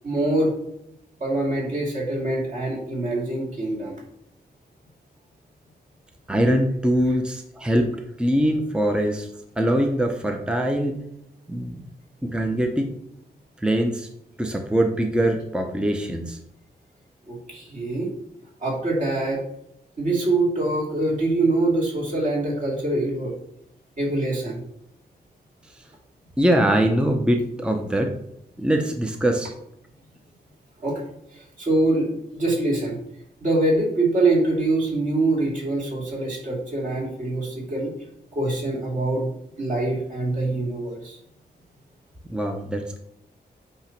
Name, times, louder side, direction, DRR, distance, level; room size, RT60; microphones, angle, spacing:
voice 1, 0.0-0.5 1.2-4.0 17.3-18.1 18.6-19.4 20.0-23.3 24.0-24.6 30.8-31.0 31.3-33.0 33.4-37.9 38.3-39.3 39.6-41.2, right 2 dB, 50° right, -3 dB, 2.7 m, -24 dB
voice 2, 6.3-9.3 9.6-11.0 11.5-11.8 12.2-12.9 13.6-14.1 14.4-16.4 26.4-28.1 28.6-29.5 42.3-43.0, right 1 dB, 5° right, 3 dB, 0.7 m, -22 dB
8.7 x 3.0 x 5.9 m, 0.77 s
wide cardioid pair, 165°, 17 cm